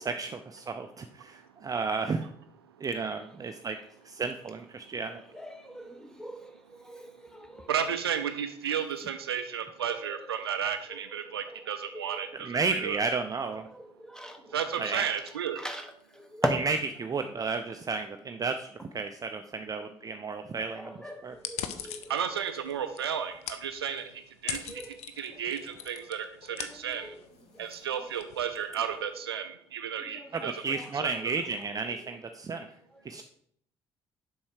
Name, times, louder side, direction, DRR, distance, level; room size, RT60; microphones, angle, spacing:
voice 1, 0.0-2.3 2.8-3.8 4.0-5.2 12.4-13.7 14.8-15.1 16.7-20.9 21.2-21.3 30.3-32.7 33.0-33.2, right 4 dB, 30° right, 7 dB, 0.5 m, -32 dB
voice 2, 5.0-7.8 9.9-10.4 10.9-12.5 13.6-16.6 20.6-23.0 24.4-25.0 25.3-25.4 26.5-27.2 27.5-28.1 28.8-29.1 30.0-31.2 31.9-32.1 32.9-33.2, equal, 5° left, 6 dB, 1.2 m, -41 dB
voice 3, 7.7-13.0 14.5-15.6 22.1-24.8 25.2-27.1 27.6-30.5 31.0-31.1, right 8 dB, 80° right, 9 dB, 0.5 m, -33 dB
sound 1, 21.3-29.1, left 9 dB, 60° left, 0.6 m, -43 dB
7.1 x 5.5 x 4.7 m, 0.66 s
figure-of-eight pair, 45°, 13 cm